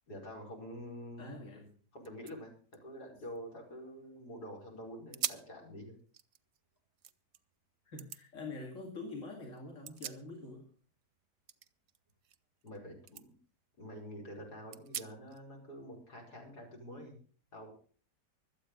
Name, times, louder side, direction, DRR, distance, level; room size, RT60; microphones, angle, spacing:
voice 1, 0.1-1.4 1.9-2.5 2.8-6.0 12.6-13.3 13.8-17.2 17.5-17.7, equal, 70° left, -1 dB, 5.5 m, -47 dB
voice 2, 1.2-1.7 7.9-10.7, left 3 dB, 50° left, 0 dB, 2.9 m, -45 dB
sound 1, 1.6-1.7 2.0-4.2 4.6-4.7 5.1-5.6 6.0-7.4 8.0-8.2 9.6-10.7 11.0-12.8 13.1-13.3 13.7-13.8 14.7-15.4, right 9 dB, 55° right, 1.0 m, -44 dB
25.0 x 8.6 x 3.9 m, 0.42 s
omnidirectional pair, 1.8 m